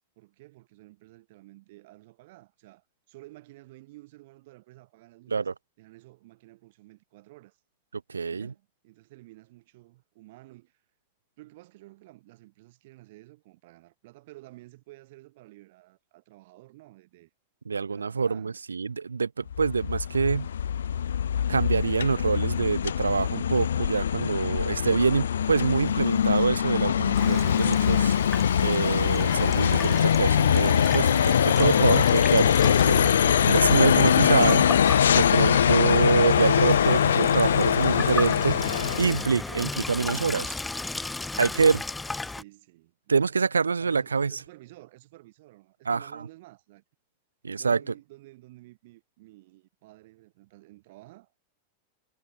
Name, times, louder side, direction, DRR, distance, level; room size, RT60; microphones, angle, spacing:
voice 1, 0.0-5.5 5.8-7.6 8.3-10.8 11.4-17.3 17.9-18.6 42.3-43.3 43.8-46.8 47.6-51.3, right 19 dB, 50° right, 6.8 m, -52 dB
voice 2, 8.1-8.5 17.7-20.5 21.5-28.2 28.6-33.2 33.4-34.7 35.1-40.5 41.4-41.8 43.1-44.3 45.9-46.0 47.4-47.8, right 5 dB, 75° right, 0.4 m, -25 dB
sound 1, 19.5-39.3, left 8 dB, 65° left, 0.5 m, -23 dB
Water tap faucet / Sink (filling or washing), 27.1-42.4, left 2 dB, 10° left, 0.9 m, -35 dB
figure-of-eight pair, 90°, 0 cm